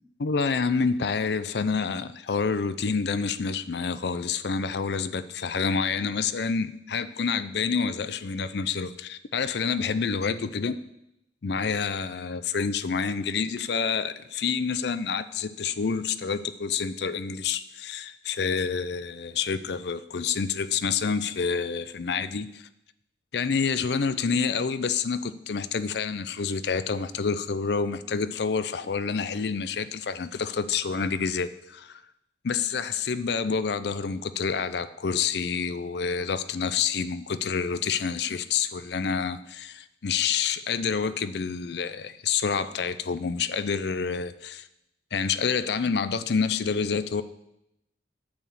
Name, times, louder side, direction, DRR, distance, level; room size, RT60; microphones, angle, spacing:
voice 1, 0.2-10.8 11.4-22.7 23.3-32.0 32.4-44.7 45.1-47.2, left 5 dB, 65° left, 14 dB, 0.5 m, -28 dB
8.5 x 4.8 x 7.3 m, 0.82 s
head